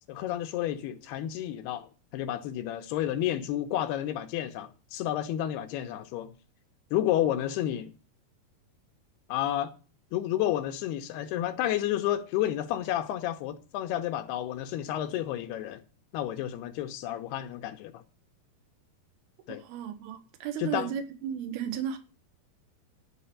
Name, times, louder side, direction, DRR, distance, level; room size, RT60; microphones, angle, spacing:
voice 1, 0.1-6.3 6.9-7.9 9.3-9.7 10.1-15.8 16.1-18.0 19.5-19.6 20.6-20.9, left 12 dB, 80° left, 2.8 m, -31 dB
voice 2, 19.6-22.0, right 8 dB, 70° right, 3.2 m, -34 dB
11.5 x 5.1 x 8.5 m
omnidirectional pair, 4.7 m